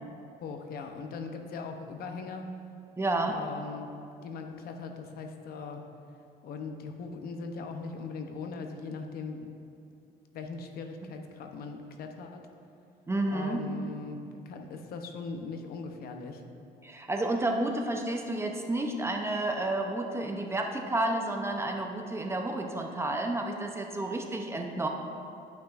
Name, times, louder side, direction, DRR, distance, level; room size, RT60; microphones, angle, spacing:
voice 1, 0.4-2.5 3.2-3.9 4.2-5.8 6.4-9.5 10.3-12.4 13.3-16.4, left 4 dB, 65° left, 5 dB, 0.7 m, -40 dB
voice 2, 3.0-3.4 13.1-13.7 16.8-24.9, right 2 dB, 15° right, 3 dB, 0.6 m, -31 dB
11.5 x 5.8 x 2.5 m, 2.6 s
cardioid pair, 110°, 17 cm